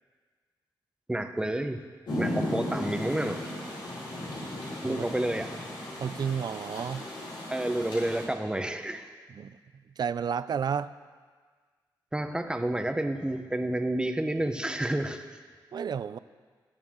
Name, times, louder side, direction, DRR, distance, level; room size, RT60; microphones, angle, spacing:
voice 1, 1.1-1.8 2.2-3.5 4.8-5.5 7.5-9.1 12.1-15.2, right 1 dB, 10° right, 6 dB, 1.0 m, -30 dB
Rain, 2.1-8.3, left 1 dB, 75° left, 4.6 m, -36 dB
voice 2, 6.0-7.1 9.4-9.6 10.0-10.9 15.7-16.2, right 7 dB, 60° right, 14 dB, 0.4 m, -31 dB
22.0 x 8.4 x 3.7 m, 1.5 s
cardioid pair, 80°, 8 cm